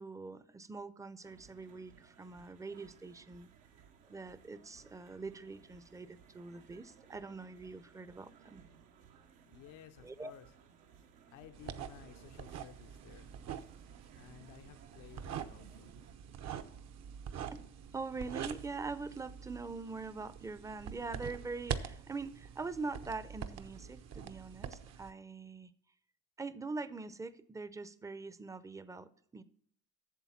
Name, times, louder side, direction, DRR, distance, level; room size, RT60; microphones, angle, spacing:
voice 1, 0.0-3.5 4.1-8.6 10.0-10.3 17.5-17.6 17.9-25.7 26.4-29.4, right 3 dB, 10° right, 15 dB, 0.5 m, -43 dB
sound 1, 1.2-16.1, right 7 dB, 85° right, 1.2 m, -61 dB
voice 2, 9.5-13.3 14.2-15.9, left 11 dB, 70° left, 8 dB, 0.7 m, -56 dB
sound 2, 11.5-25.1, right 8 dB, 55° right, 0.7 m, -45 dB
8.3 x 6.9 x 5.7 m, 0.64 s
supercardioid pair, 90°, 32 cm